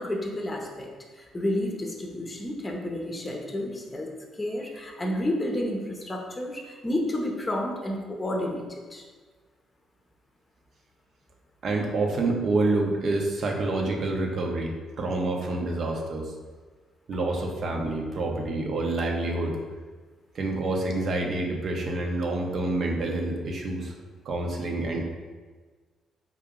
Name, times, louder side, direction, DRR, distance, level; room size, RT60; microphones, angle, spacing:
voice 1, 0.0-4.1 4.4-9.0, left 1 dB, 25° left, 1 dB, 0.7 m, -31 dB
voice 2, 11.6-16.3 17.1-19.6 20.3-23.9 24.2-25.0, right 2 dB, 55° right, 1 dB, 0.7 m, -27 dB
3.7 x 2.7 x 3.6 m, 1.4 s
hypercardioid pair, 45°, 0 cm